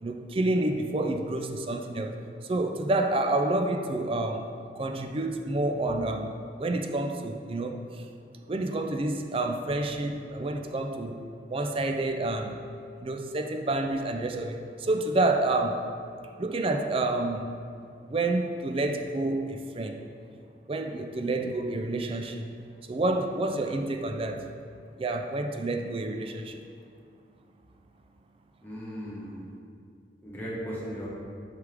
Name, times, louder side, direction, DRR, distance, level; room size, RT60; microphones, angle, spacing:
voice 1, 0.0-8.0 8.5-11.2 11.5-12.6 13.0-15.9 16.4-17.6 18.1-20.0 20.7-22.5 22.9-24.5 25.0-26.6, right 2 dB, 30° right, 5 dB, 0.4 m, -29 dB
voice 2, 28.6-29.4 30.2-31.1, equal, 10° left, -8 dB, 1.5 m, -37 dB
8.2 x 5.0 x 3.5 m, 2.4 s
head